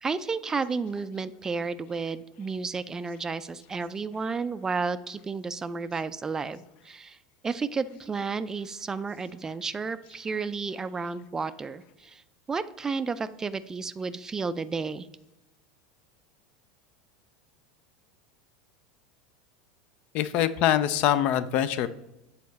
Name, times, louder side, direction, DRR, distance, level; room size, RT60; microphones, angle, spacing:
voice 1, 0.0-7.2 7.4-12.2 12.5-15.1, right 4 dB, 20° right, 14 dB, 0.3 m, -32 dB
voice 2, 20.1-21.9, left 11 dB, 50° left, 14 dB, 0.4 m, -24 dB
7.5 x 4.1 x 4.0 m, 0.92 s
hypercardioid pair, 85°, 3 cm